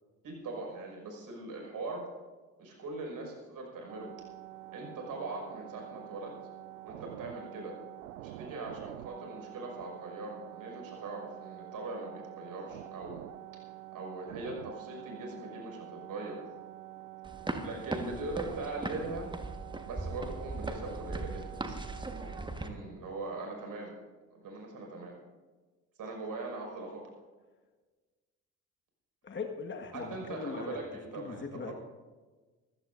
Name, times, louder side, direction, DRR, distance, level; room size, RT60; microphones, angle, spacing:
voice 1, 0.2-2.1 2.6-4.1 4.7-6.3 6.8-7.8 8.2-13.2 13.9-16.5 17.6-19.3 19.8-21.7 22.2-23.9 24.3-25.2 26.0-27.0 29.9-31.7, right 2 dB, 50° right, 1 dB, 5.9 m, -41 dB
sound 1, 3.9-22.4, right 15 dB, 75° right, 0.6 m, -47 dB
sound 2, 17.2-22.7, right 2 dB, 10° right, 1.5 m, -39 dB
voice 2, 29.2-30.8 31.1-31.7, left 4 dB, 25° left, 4 dB, 1.7 m, -40 dB
25.5 x 14.5 x 2.7 m, 1.3 s
figure-of-eight pair, 50°, 42 cm